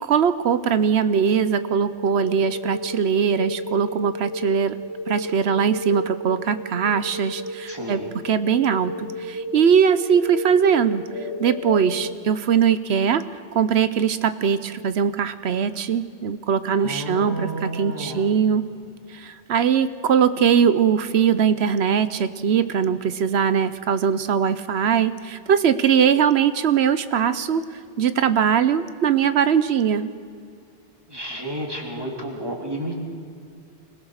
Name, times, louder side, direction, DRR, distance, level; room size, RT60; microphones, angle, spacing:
voice 1, 0.0-4.8 5.1-11.0 11.4-18.6 19.1-27.6 28.0-30.1, right 7 dB, 70° right, 12 dB, 1.0 m, -21 dB
sound 1, 1.0-12.1, left 1 dB, 90° left, 1.7 m, -33 dB
voice 2, 7.7-8.1 16.8-18.3 31.1-33.0, right 1 dB, 20° right, 0 dB, 3.0 m, -31 dB
24.5 x 17.0 x 6.5 m, 2.2 s
omnidirectional pair, 1.1 m